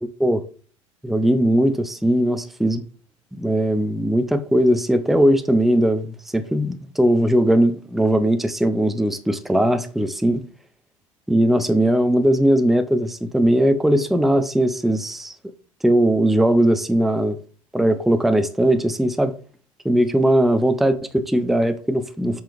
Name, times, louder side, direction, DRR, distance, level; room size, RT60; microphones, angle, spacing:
voice 1, 0.0-0.4 1.0-2.8 3.3-10.4 11.3-15.3 15.8-17.4 17.7-19.3 19.8-22.4, right 1 dB, ahead, 0.7 m, -19 dB
7.5 x 5.2 x 3.6 m
figure-of-eight pair, 75°, 17 cm